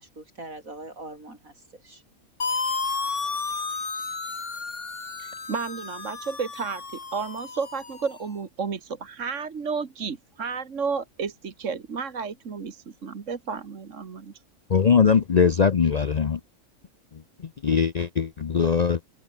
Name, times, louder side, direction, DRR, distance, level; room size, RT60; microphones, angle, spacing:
voice 1, 0.0-2.0, right 2 dB, 85° right, 6.6 m, -42 dB
sound 1, 2.4-8.2, left 4 dB, 60° left, 2.7 m, -32 dB
voice 2, 5.2-6.8 7.1-14.3, right 5 dB, 65° right, 2.0 m, -32 dB
voice 3, 14.7-16.4 17.1-19.0, left 6 dB, 45° left, 0.6 m, -21 dB
open air
omnidirectional pair, 1.4 m